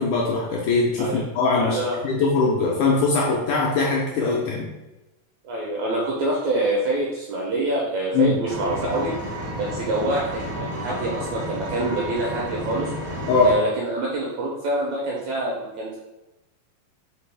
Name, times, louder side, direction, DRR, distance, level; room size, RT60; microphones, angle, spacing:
voice 1, 0.0-1.8 2.0-4.7 8.1-8.4 10.9-11.0 13.3-13.6, left 3 dB, 80° left, -2 dB, 1.8 m, -21 dB
voice 2, 1.6-2.0 5.4-9.1 9.5-12.9 13.4-16.0, right 2 dB, 80° right, -4 dB, 1.7 m, -26 dB
Engine, 8.5-13.5, equal, 60° right, 0.9 m, -31 dB
5.1 x 3.1 x 3.3 m, 1.0 s
omnidirectional pair, 4.0 m